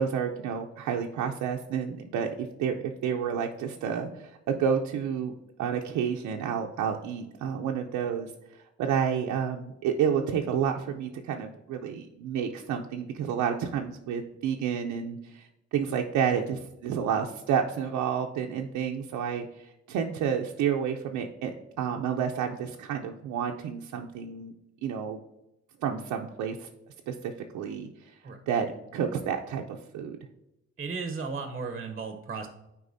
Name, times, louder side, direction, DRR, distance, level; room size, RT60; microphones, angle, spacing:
voice 1, 0.0-5.3 5.6-8.3 8.8-21.5 21.8-24.5 24.8-25.2 25.8-26.7 27.1-27.9 28.5-30.2, right 7 dB, 80° right, 2 dB, 0.6 m, -30 dB
voice 2, 30.8-32.5, right 4 dB, 30° right, 7 dB, 0.7 m, -35 dB
8.2 x 4.7 x 2.6 m, 0.91 s
cardioid pair, 90°, 30 cm